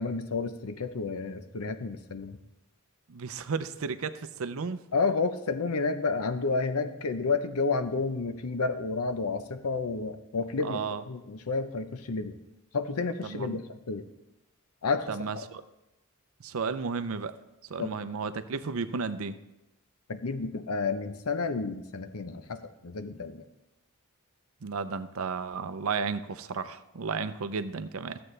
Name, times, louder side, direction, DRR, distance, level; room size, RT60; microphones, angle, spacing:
voice 1, 0.0-2.4 4.9-10.8 11.1-12.4 12.7-14.1 14.8-15.5 17.8-18.0 20.1-23.4 27.1-27.2, left 4 dB, 90° left, 10 dB, 0.7 m, -31 dB
voice 2, 3.1-4.8 10.6-11.0 13.2-13.6 15.1-15.6 16.4-17.3 17.7-19.4 24.6-28.2, right 5 dB, 70° right, 12 dB, 0.5 m, -33 dB
14.0 x 7.7 x 3.3 m, 0.95 s
head